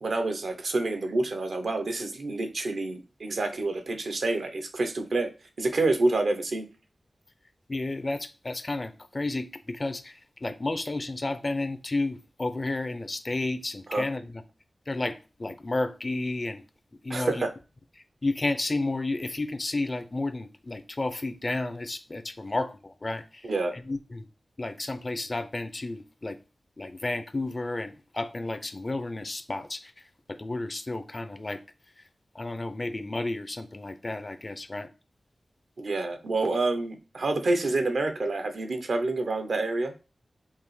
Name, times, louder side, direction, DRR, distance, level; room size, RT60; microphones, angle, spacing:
voice 1, 0.0-5.3 5.6-6.7 13.9-14.1 17.1-17.5 23.4-23.7 35.8-39.9, right 2 dB, 80° right, 0.6 m, -28 dB
voice 2, 7.7-10.1 10.4-14.2 14.9-16.6 17.0-17.5 18.2-23.2 23.9-24.2 24.6-26.4 26.8-29.9 30.3-31.6 32.4-34.9, left 2 dB, 45° left, 0.4 m, -32 dB
5.4 x 2.0 x 3.1 m
cardioid pair, 40°, 0 cm